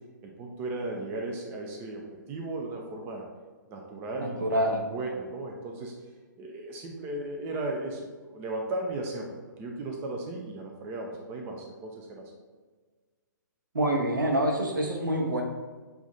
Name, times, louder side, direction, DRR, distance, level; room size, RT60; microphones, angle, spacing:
voice 1, 0.2-2.0 2.3-3.2 3.7-5.9 6.4-12.3, right 2 dB, 20° right, 0 dB, 0.5 m, -36 dB
voice 2, 4.2-4.8 13.7-15.4, right 1 dB, 70° right, 1 dB, 1.0 m, -26 dB
6.8 x 2.6 x 2.7 m, 1.4 s
figure-of-eight pair, 130°, 11 cm